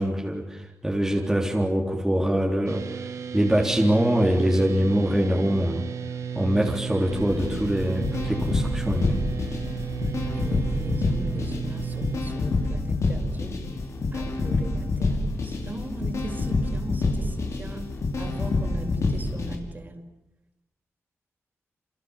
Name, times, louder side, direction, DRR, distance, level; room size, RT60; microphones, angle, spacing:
voice 1, 0.0-2.8 3.3-5.8 6.3-9.3, right 1 dB, 10° right, -1 dB, 3.7 m, -23 dB
sound 1, 2.7-12.2, right 7 dB, 85° right, 1.7 m, -34 dB
sound 2, 7.1-19.6, left 3 dB, 70° left, 5.9 m, -27 dB
voice 2, 10.0-13.6 14.1-17.9 18.2-20.1, right 1 dB, 35° right, 4 dB, 5.6 m, -39 dB
28.5 x 28.5 x 7.3 m, 0.85 s
wide cardioid pair, 100°, 5 cm